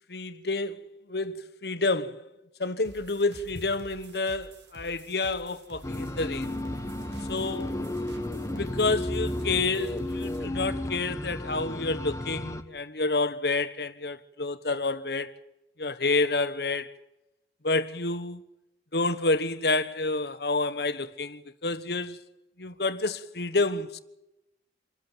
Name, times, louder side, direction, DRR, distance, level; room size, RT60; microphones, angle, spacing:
voice 1, 0.1-0.8 1.1-2.3 2.6-6.6 7.3-7.8 8.4-15.3 15.8-16.9 17.6-18.4 18.9-22.2 22.6-24.0, left 3 dB, 65° left, 1.3 m, -29 dB
sound 1, 2.8-10.5, right 2 dB, 85° right, 2.3 m, -50 dB
sound 2, 5.8-12.6, left 1 dB, 20° left, 1.3 m, -33 dB
26.5 x 14.0 x 9.1 m
head